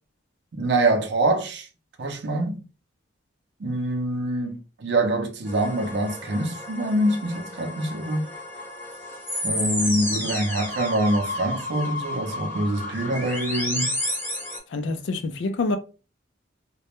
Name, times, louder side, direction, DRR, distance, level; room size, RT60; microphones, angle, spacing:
voice 1, 0.5-1.7 2.0-2.6 3.6-8.2 9.4-14.0, right 1 dB, 55° right, 0.5 m, -25 dB
sound 1, 5.5-14.6, left 1 dB, 10° left, 0.7 m, -31 dB
voice 2, 14.7-15.8, left 3 dB, 65° left, 0.4 m, -26 dB
2.2 x 2.0 x 2.9 m
head